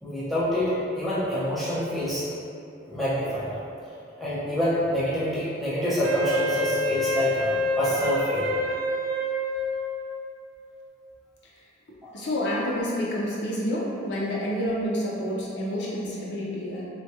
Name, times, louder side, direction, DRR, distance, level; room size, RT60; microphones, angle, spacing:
voice 1, 0.0-2.3 2.9-3.5 4.2-8.7 12.0-12.2, equal, ahead, -12 dB, 0.6 m, -27 dB
Wind instrument woodwind instrument, 6.0-10.3, left 1 dB, 75° right, 0.4 m, -27 dB
voice 2, 12.1-16.9, equal, 60° left, -6 dB, 0.5 m, -28 dB
3.4 x 2.2 x 2.7 m, 2.6 s
head